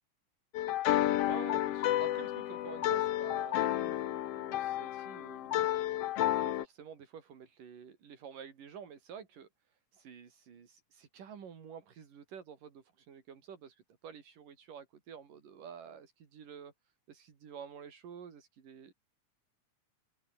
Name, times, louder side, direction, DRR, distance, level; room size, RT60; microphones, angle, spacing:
sound 1, 0.5-6.6, left 13 dB, 70° left, 1.5 m, -31 dB
voice 1, 1.0-5.7 6.2-9.5 9.9-16.7 17.1-18.9, right 7 dB, 85° right, 4.8 m, -50 dB
open air
omnidirectional pair, 3.7 m